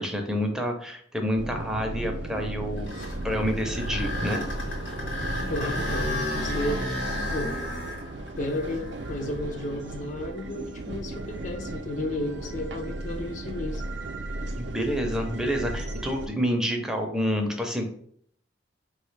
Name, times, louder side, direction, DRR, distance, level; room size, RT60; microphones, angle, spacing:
voice 1, 0.0-3.0 3.2-4.4 14.6-17.8, equal, 5° right, 2 dB, 0.6 m, -28 dB
sound 1, 1.4-16.3, right 2 dB, 65° right, 0.5 m, -35 dB
sound 2, 2.6-10.7 11.2-11.3 12.1-12.2 15.7-16.1, left 1 dB, 85° left, 1.8 m, -34 dB
voice 2, 5.5-6.8 7.3-7.5 8.4-13.8, left 1 dB, 40° left, 4 dB, 0.4 m, -33 dB
4.4 x 3.1 x 3.2 m, 0.62 s
head